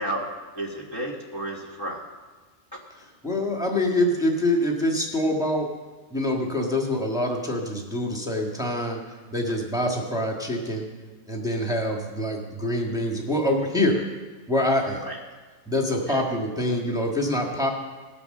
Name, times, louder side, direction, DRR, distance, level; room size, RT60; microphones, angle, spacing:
voice 1, 0.0-2.0 15.0-15.2 15.9-16.2, right 1 dB, 20° left, -2 dB, 1.4 m, -32 dB
voice 2, 3.2-5.7 6.1-9.0 9.3-10.9 11.3-14.1 14.5-15.1 15.7-17.7, left 1 dB, 5° right, 0 dB, 1.6 m, -25 dB
18.5 x 6.8 x 6.7 m, 1.3 s
omnidirectional pair, 1.4 m